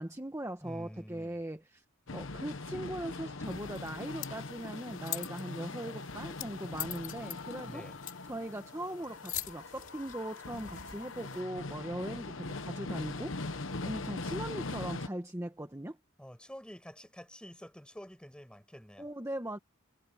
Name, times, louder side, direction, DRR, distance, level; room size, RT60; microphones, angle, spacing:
voice 1, 0.0-1.8 2.1-7.8 8.3-16.0 19.0-19.6, right 1 dB, 15° right, 1.3 m, -40 dB
voice 2, 0.6-1.4 7.6-8.0 16.2-19.1, equal, 5° left, 5.9 m, -48 dB
sound 1, 2.1-15.1, left 3 dB, 70° left, 1.2 m, -41 dB
sound 2, 3.4-11.4, left 11 dB, 45° left, 5.5 m, -45 dB
head